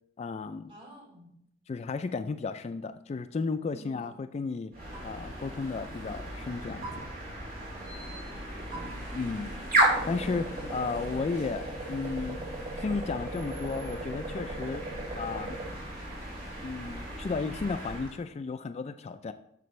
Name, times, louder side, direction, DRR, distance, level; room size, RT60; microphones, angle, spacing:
voice 1, 0.2-0.7 1.7-4.7 5.0-7.1 9.1-9.5 10.1-12.4 12.8-14.8 15.2-15.6 16.6-19.3, left 4 dB, 35° left, 10 dB, 0.3 m, -34 dB
voice 2, 0.7-1.4 3.7-4.1 7.7-8.9, right 1 dB, 30° right, -2 dB, 3.2 m, -52 dB
sound 1, 4.7-18.1, right 1 dB, 50° right, 3.2 m, -34 dB
10.5 x 6.8 x 3.2 m, 0.73 s
head